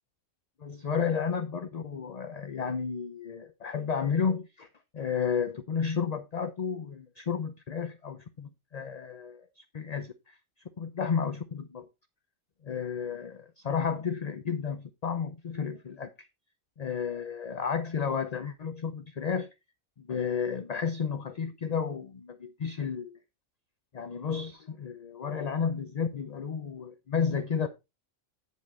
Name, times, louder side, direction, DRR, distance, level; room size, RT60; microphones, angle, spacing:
voice 1, 0.6-4.7 4.9-10.3 10.8-11.9 12.6-16.3 16.8-19.5 20.0-23.2 23.9-27.7, left 6 dB, 40° left, 0.6 m, -32 dB
9.7 x 5.2 x 4.2 m
omnidirectional pair, 1.3 m